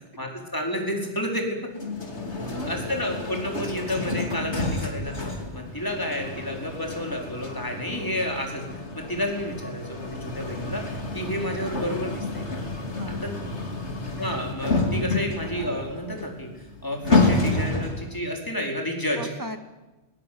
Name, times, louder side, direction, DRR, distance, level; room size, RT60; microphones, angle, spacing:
voice 1, 0.2-1.6 2.7-8.6 8.9-12.6 13.1-13.3 14.2-16.5 16.8-19.2, equal, 15° left, 1 dB, 4.7 m, -30 dB
sound 1, 1.7-18.2, left 3 dB, 75° left, 3.3 m, -29 dB
voice 2, 2.5-2.9 13.0-14.0 19.2-19.6, equal, 15° right, 7 dB, 2.2 m, -40 dB
20.5 x 19.5 x 9.5 m, 1.1 s
omnidirectional pair, 1.2 m